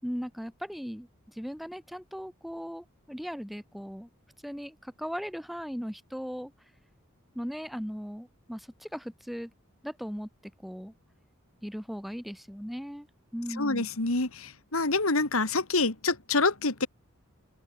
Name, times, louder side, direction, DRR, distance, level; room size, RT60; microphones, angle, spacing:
voice 1, 0.0-4.1 4.4-6.5 7.3-9.5 9.8-10.3 10.6-10.9 11.6-13.1 13.3-13.9, equal, ahead, 3.5 m, -38 dB
voice 2, 13.6-16.9, left 3 dB, 80° left, 2.8 m, -27 dB
open air
head